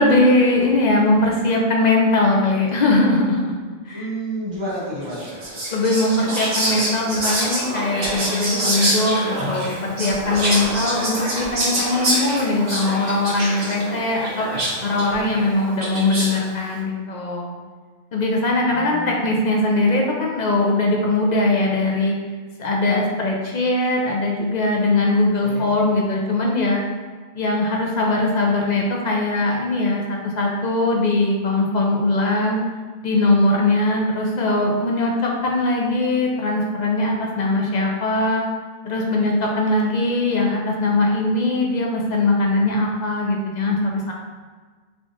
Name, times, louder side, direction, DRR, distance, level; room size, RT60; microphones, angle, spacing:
voice 1, 0.0-3.6 3.9-4.1 5.7-14.5 14.8-17.6 18.1-22.1 22.6-26.8 27.3-32.6 33.0-38.5 38.8-44.1, left 2 dB, 55° left, -1 dB, 0.5 m, -20 dB
voice 2, 3.9-5.4 6.7-6.9 15.2-15.4 18.6-19.4 25.4-25.7, right 1 dB, 30° right, -9 dB, 0.6 m, -31 dB
Whispering, 5.1-16.4, right 1 dB, 70° right, 1.3 m, -26 dB
3.4 x 2.5 x 3.7 m, 1.5 s
omnidirectional pair, 1.1 m